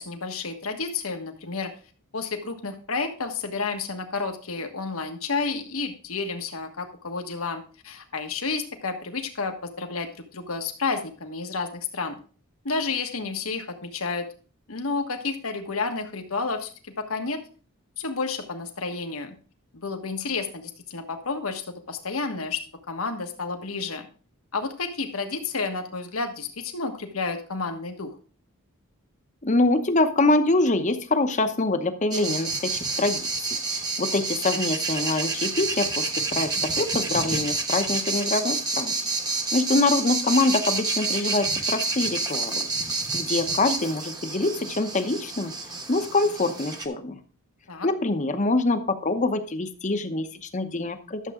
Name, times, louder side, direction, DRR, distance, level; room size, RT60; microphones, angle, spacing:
voice 1, 0.0-1.7 2.1-12.2 12.6-14.3 14.7-17.4 18.0-19.3 19.7-22.6 22.9-24.1 24.5-28.1 39.7-39.8 47.7-47.9, left 4 dB, 80° left, 5 dB, 1.5 m, -31 dB
voice 2, 29.4-33.3 33.7-38.9 39.5-42.7 43.1-45.5 45.9-47.2 47.8-51.2, left 2 dB, 35° left, 9 dB, 0.9 m, -25 dB
sound 1, 32.1-46.9, right 3 dB, 20° right, 1.1 m, -28 dB
12.0 x 7.4 x 3.7 m, 0.39 s
head